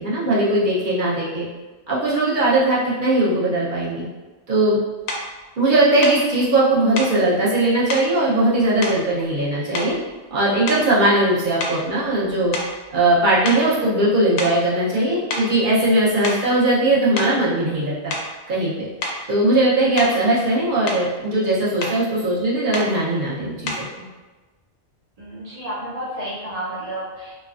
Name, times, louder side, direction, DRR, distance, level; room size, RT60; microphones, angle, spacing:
voice 1, 0.0-1.5 1.9-4.0 4.5-4.8 5.6-9.9 10.3-12.5 12.9-18.1 18.5-18.9 19.3-24.0, right 1 dB, 45° right, -7 dB, 0.8 m, -19 dB
sound 1, 5.1-5.3 6.0-6.2 7.0-7.2 7.9-8.1 8.8-9.4 9.7-10.1 10.6-11.0 11.6-13.2 13.4-13.7 14.4-14.6 15.3-15.5 16.1-16.5 17.2-17.4 18.1-18.4 19.0-19.2 20.0-20.3 20.6-21.1 21.8-22.0 22.7-23.0 23.7-23.9, left 2 dB, 65° left, 0.8 m, -29 dB
voice 2, 25.2-27.3, right 1 dB, 80° right, -6 dB, 0.3 m, -31 dB
3.1 x 2.2 x 2.4 m, 1.2 s
omnidirectional pair, 1.3 m